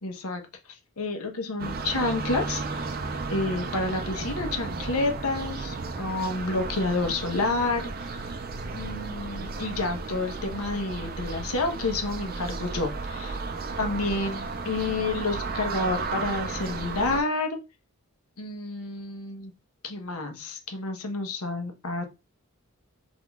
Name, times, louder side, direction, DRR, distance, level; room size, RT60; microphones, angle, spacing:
voice 1, 0.0-0.4 0.7-3.0 3.3-8.1 8.7-13.4 13.8-17.5 18.4-19.5 19.8-22.0, left 3 dB, 85° left, 4 dB, 1.2 m, -29 dB
sound 1, 1.6-17.2, right 3 dB, 40° right, 0.5 m, -34 dB
3.8 x 3.6 x 3.7 m, 0.27 s
head